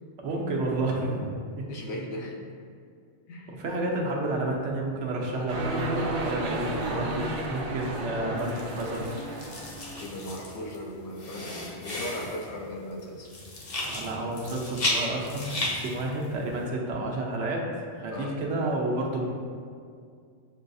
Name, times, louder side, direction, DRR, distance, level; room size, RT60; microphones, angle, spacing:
voice 1, 0.2-1.6 3.6-9.1 13.8-17.7 17.9-19.2, right 2 dB, 85° right, -1 dB, 1.0 m, -30 dB
voice 2, 1.7-2.5 3.3-3.6 10.0-13.3 18.1-18.4, left 1 dB, 75° left, 0 dB, 0.9 m, -37 dB
sound 1, 5.5-10.1, right 2 dB, 55° right, 0.6 m, -32 dB
sound 2, 8.3-16.6, left 1 dB, 45° left, 0.7 m, -35 dB
7.0 x 2.3 x 2.6 m, 2.2 s
omnidirectional pair, 1.2 m